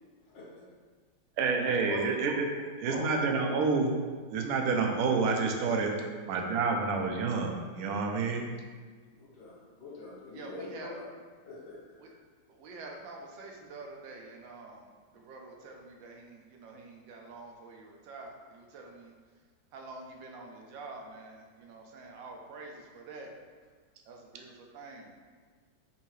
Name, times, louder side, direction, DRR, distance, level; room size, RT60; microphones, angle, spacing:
voice 1, 1.4-2.5 2.8-3.9 4.3-6.0 6.3-8.4, right 4 dB, 70° right, 2 dB, 0.9 m, -28 dB
voice 2, 2.9-3.2 9.1-10.7 11.4-11.8, left 2 dB, 60° left, -8 dB, 1.9 m, -43 dB
voice 3, 10.3-10.9 12.0-12.1 12.5-14.9 15.1-19.1 19.7-23.3 24.1-25.1, right 3 dB, 90° right, 1 dB, 1.4 m, -47 dB
5.7 x 2.7 x 3.1 m, 1.5 s
omnidirectional pair, 2.0 m